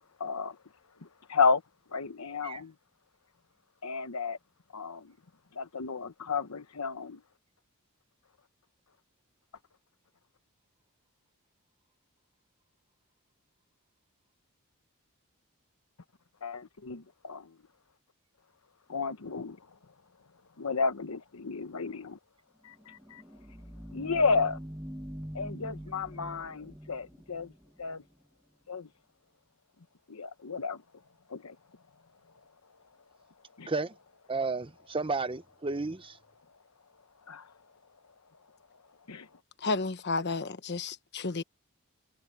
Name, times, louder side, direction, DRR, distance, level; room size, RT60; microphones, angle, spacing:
voice 1, 0.2-0.6 1.3-1.6 1.9-2.7 3.8-4.4 4.7-5.1 5.5-7.2 16.4-17.5 18.9-19.6 20.6-22.2 22.6-23.2 23.9-24.6 25.3-27.5 27.8-28.0 28.7-28.9 30.1-30.8 31.3-31.5 33.6-33.7 37.3-37.5 39.1-39.3, left 4 dB, 80° left, 1.0 m, -32 dB
sound 1, 22.7-28.2, equal, 5° right, 1.6 m, -44 dB
voice 2, 34.3-36.2, right 3 dB, 25° right, 0.8 m, -32 dB
voice 3, 39.6-41.4, left 3 dB, 50° left, 1.2 m, -32 dB
head